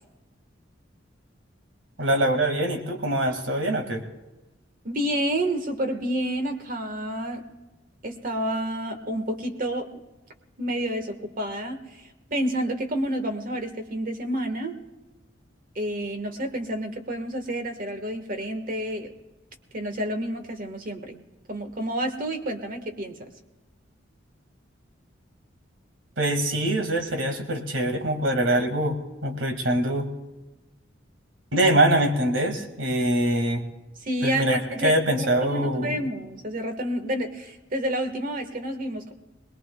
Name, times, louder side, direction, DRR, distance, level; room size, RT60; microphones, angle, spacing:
voice 1, 2.0-4.0 26.2-30.1 31.5-33.6 34.2-36.0, right 1 dB, 80° right, 5 dB, 2.0 m, -24 dB
voice 2, 4.8-7.4 8.0-10.0 10.6-14.8 15.7-19.1 19.7-21.2 21.5-23.3 34.0-39.1, right 1 dB, 50° right, 7 dB, 1.5 m, -29 dB
22.5 x 20.0 x 2.3 m, 1.1 s
head